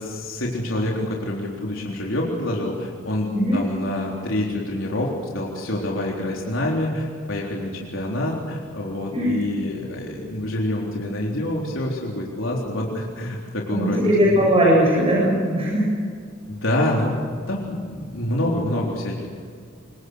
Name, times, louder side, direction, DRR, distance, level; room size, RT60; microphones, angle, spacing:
voice 1, 0.0-14.5 16.5-19.3, left 1 dB, 90° left, -2 dB, 3.9 m, -27 dB
voice 2, 13.7-15.8, equal, 30° right, -4 dB, 7.4 m, -19 dB
27.0 x 24.5 x 6.5 m, 2.1 s
head